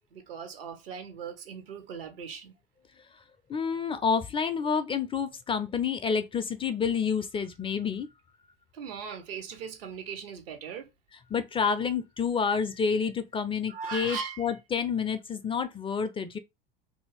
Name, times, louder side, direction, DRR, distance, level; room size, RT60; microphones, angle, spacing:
voice 1, 0.1-2.5 8.7-10.9 13.7-14.5, right 6 dB, 75° right, 0.9 m, -39 dB
voice 2, 3.5-8.1 11.3-16.4, left 6 dB, 20° left, 0.4 m, -29 dB
2.8 x 2.7 x 3.0 m
hypercardioid pair, 75°, 29 cm